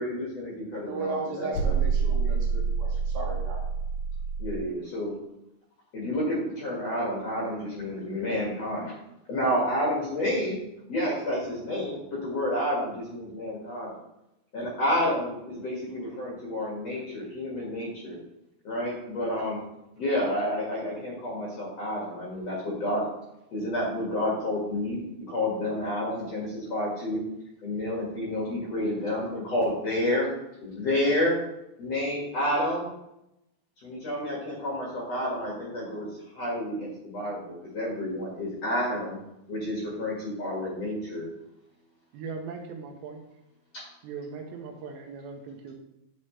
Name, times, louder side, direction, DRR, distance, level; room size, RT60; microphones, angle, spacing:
voice 1, 0.0-1.7 4.4-5.1 5.9-8.9 9.3-10.6 10.9-13.9 14.5-18.2 18.6-19.6 20.0-23.0 23.5-25.0 25.3-27.2 27.6-30.3 30.6-31.4 31.8-32.9 33.8-36.1 36.3-39.2 39.5-41.3, left 1 dB, 45° left, -5 dB, 2.5 m, -29 dB
voice 2, 0.7-3.7, right 3 dB, 65° right, 0 dB, 3.0 m, -35 dB
sound 1, 1.5-4.6, right 5 dB, 75° left, 1.4 m, -27 dB
voice 3, 42.1-43.2 44.0-45.7, right 5 dB, 90° right, 2 dB, 3.2 m, -39 dB
10.5 x 6.6 x 3.3 m, 0.86 s
omnidirectional pair, 4.8 m